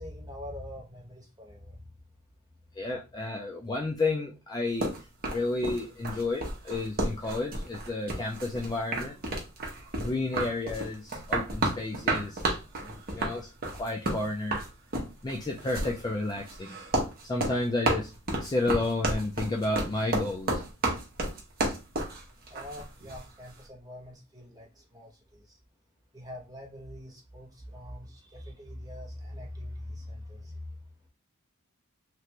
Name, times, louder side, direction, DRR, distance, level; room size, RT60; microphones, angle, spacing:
voice 1, 0.0-1.9 22.5-25.6 26.1-30.8, left 1 dB, 15° right, -2 dB, 0.9 m, -43 dB
voice 2, 2.8-4.9 5.3-9.2 10.0-12.4 12.8-13.5 13.8-14.6 15.2-16.8 17.2-18.1 18.4-20.6, left 2 dB, 20° left, 0 dB, 0.3 m, -31 dB
sound 1, 4.8-23.3, right 2 dB, 40° right, 0.8 m, -31 dB
3.2 x 2.4 x 2.9 m, 0.27 s
head